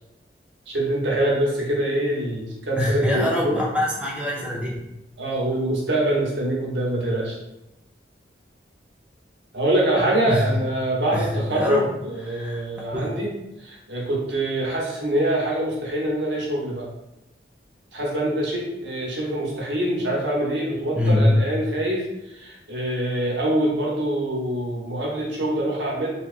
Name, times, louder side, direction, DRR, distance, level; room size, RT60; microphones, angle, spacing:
voice 1, 0.7-3.6 5.2-7.4 9.5-13.3 13.6-16.9 17.9-26.1, right 1 dB, 85° right, -3 dB, 0.8 m, -24 dB
voice 2, 2.8-4.8 10.3-10.5 11.1-11.9 12.3-12.6 12.9-13.1 21.0-21.4, left 1 dB, 5° right, -4 dB, 0.4 m, -23 dB
2.9 x 2.2 x 2.4 m, 0.90 s
head